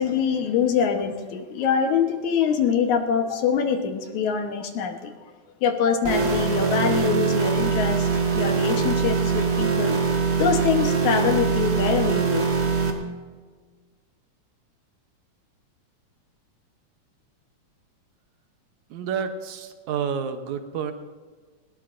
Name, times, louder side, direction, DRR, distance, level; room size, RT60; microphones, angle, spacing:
voice 1, 0.0-5.1 5.6-8.1 8.3-10.0 10.4-12.4, left 7 dB, 70° left, 5 dB, 2.4 m, -24 dB
sound 1, 6.0-12.9, right 5 dB, 40° right, 1.2 m, -23 dB
voice 2, 18.9-20.9, right 7 dB, 75° right, 7 dB, 2.2 m, -29 dB
20.0 x 18.0 x 2.6 m, 1.5 s
omnidirectional pair, 3.5 m